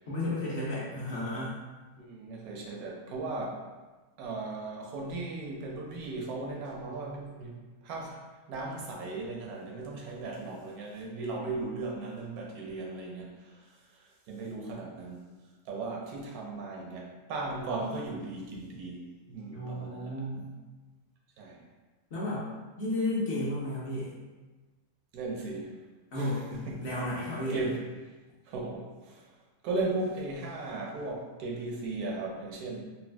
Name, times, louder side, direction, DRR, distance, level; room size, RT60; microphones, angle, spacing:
voice 1, 0.1-1.6 19.5-20.5 22.1-22.5 22.8-24.1 26.1-26.5 26.8-27.6, left 1 dB, 55° left, -7 dB, 1.0 m, -33 dB
voice 2, 2.0-3.6 4.2-7.6 7.8-8.2 8.5-15.2 15.7-20.2 21.4-21.6 25.1-25.7 26.1-26.9 27.5-27.8 28.5-29.2 29.6-32.8, right 3 dB, 85° right, -1 dB, 1.1 m, -37 dB
4.0 x 2.2 x 2.2 m, 1.2 s
omnidirectional pair, 1.5 m